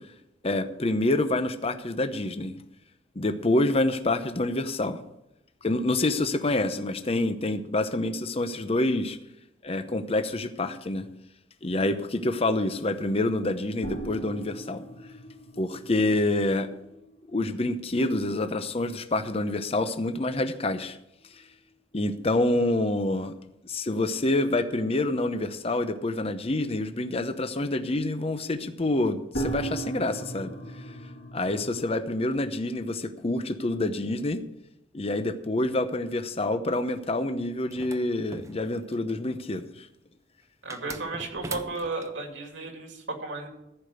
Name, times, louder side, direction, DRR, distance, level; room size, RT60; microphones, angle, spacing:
voice 1, 0.4-2.5 3.2-5.0 5.6-9.2 9.6-11.0 11.6-14.8 15.6-16.7 17.3-21.0 21.9-23.3 23.6-30.5 31.3-34.4 34.9-39.9, left 2 dB, 35° left, 9 dB, 0.8 m, -27 dB
sound 1, 13.8-20.4 20.7-20.8 21.2-21.3 29.3-31.9, right 3 dB, 85° left, 2.9 m, -38 dB
sound 2, 37.7-39.1 40.7-42.1, right 3 dB, 15° right, 0.5 m, -41 dB
voice 2, 40.6-43.5, right 3 dB, 85° right, 2 dB, 2.6 m, -34 dB
14.5 x 5.1 x 8.0 m, 0.85 s
head